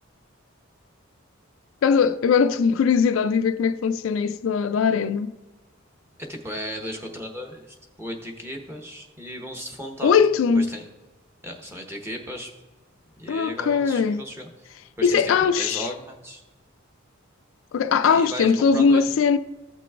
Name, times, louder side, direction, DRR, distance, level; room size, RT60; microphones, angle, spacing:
voice 1, 1.8-5.3 10.0-10.7 13.3-14.2 15.0-15.9 17.7-19.4, left 6 dB, 65° left, 0.3 m, -20 dB
voice 2, 6.2-10.2 10.5-10.8 11.4-12.5 13.2-14.5 15.0-16.4 18.0-19.0, equal, 10° right, 0.9 m, -35 dB
15.0 x 6.0 x 2.3 m
head